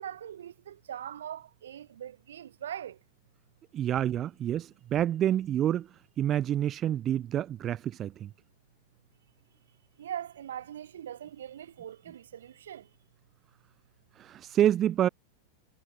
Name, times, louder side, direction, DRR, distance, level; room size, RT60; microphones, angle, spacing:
voice 1, 0.0-3.0 10.0-12.8, right 10 dB, 65° right, 2.9 m, -41 dB
voice 2, 3.7-5.9 6.2-8.3 14.2-15.1, right 11 dB, 30° right, 0.6 m, -28 dB
figure-of-eight pair, 90°, 0 cm